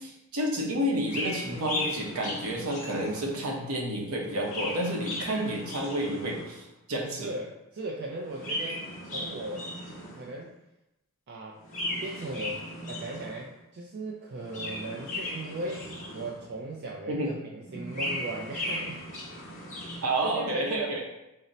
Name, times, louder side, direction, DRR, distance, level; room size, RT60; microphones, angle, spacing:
voice 1, 0.0-7.3 17.1-17.3 20.0-21.0, right 1 dB, 70° right, 0 dB, 0.8 m, -30 dB
Chirp tweet, 1.0-3.5 4.2-6.6 8.2-10.4 11.6-13.5 14.3-16.6 17.7-20.2, left 1 dB, 35° left, 0.8 m, -37 dB
voice 2, 7.2-9.7 10.1-10.5 11.3-11.6 12.0-15.9 16.1-19.1 19.8-20.7, right 2 dB, 50° right, -2 dB, 0.4 m, -38 dB
3.8 x 2.1 x 4.0 m, 0.92 s
head